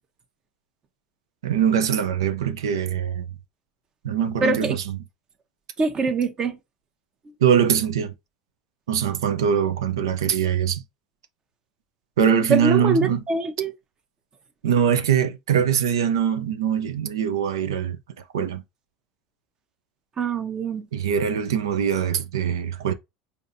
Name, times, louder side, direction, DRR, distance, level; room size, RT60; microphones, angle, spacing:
voice 1, 1.4-3.2 4.0-5.0 7.4-8.1 8.9-10.8 12.2-13.2 14.6-18.0 18.3-18.6 20.9-22.9, right 8 dB, 85° right, 0.7 m, -22 dB
voice 2, 4.4-4.8 5.8-6.6 12.5-13.7 20.2-20.9, right 3 dB, 35° right, 1.1 m, -24 dB
4.9 x 2.9 x 2.7 m
hypercardioid pair, 85°, 2 cm